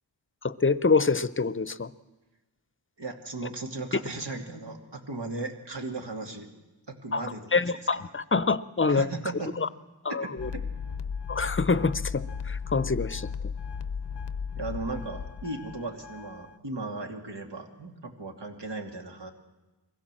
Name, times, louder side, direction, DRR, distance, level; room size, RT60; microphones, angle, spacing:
voice 1, 0.4-1.9 7.1-7.3 7.5-9.1 9.6-9.7 10.0-10.5 11.3-13.3, left 4 dB, 30° left, 16 dB, 0.7 m, -26 dB
voice 2, 3.0-6.5 6.9-8.1 8.9-9.5 10.1-10.7 14.5-19.3, right 3 dB, 75° right, 3 dB, 2.5 m, -37 dB
sound 1, 10.4-16.6, left 6 dB, 75° left, 0.7 m, -35 dB
22.5 x 16.0 x 7.6 m, 1.1 s
wide cardioid pair, 50°, 42 cm